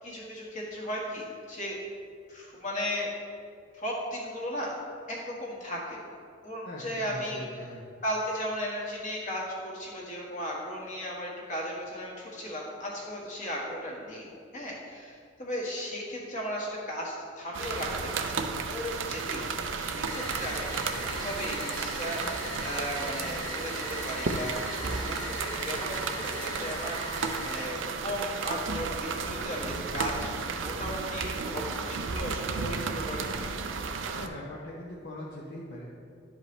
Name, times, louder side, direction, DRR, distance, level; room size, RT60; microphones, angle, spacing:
voice 1, 0.0-1.8 2.3-3.1 3.7-4.8 5.1-6.2 6.4-7.7 8.0-24.5 24.8-30.3 30.6-33.3, equal, 40° left, -4 dB, 1.6 m, -36 dB
voice 2, 6.6-7.8 34.2-35.9, left 1 dB, 60° left, -4 dB, 0.8 m, -41 dB
sound 1, 17.5-34.3, right 4 dB, 85° right, 0.5 m, -33 dB
sound 2, 20.1-27.6, left 2 dB, 80° left, 1.7 m, -40 dB
11.0 x 5.1 x 3.2 m, 2.3 s
head